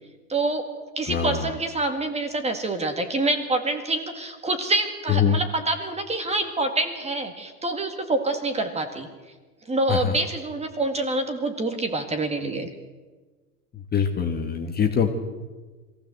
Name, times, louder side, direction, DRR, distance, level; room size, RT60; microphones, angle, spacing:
voice 1, 0.3-0.7 1.0-9.1 9.7-12.7, right 2 dB, 15° right, 7 dB, 2.0 m, -26 dB
voice 2, 1.1-1.4 5.1-5.4 9.9-10.1 13.9-15.2, left 7 dB, 20° left, 4 dB, 1.6 m, -23 dB
22.0 x 16.0 x 7.8 m, 1.3 s
supercardioid pair, 125°, 46 cm